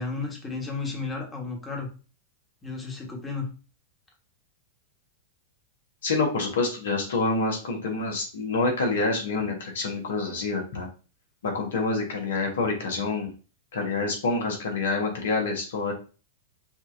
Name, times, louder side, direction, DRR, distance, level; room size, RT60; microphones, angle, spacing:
voice 1, 0.0-1.9 2.6-3.5, left 4 dB, 15° left, 1 dB, 1.5 m, -33 dB
voice 2, 6.0-10.9 11.4-13.3 13.7-15.9, left 3 dB, 70° left, 1 dB, 1.5 m, -27 dB
5.8 x 2.8 x 2.6 m, 0.35 s
hypercardioid pair, 100°, 0 cm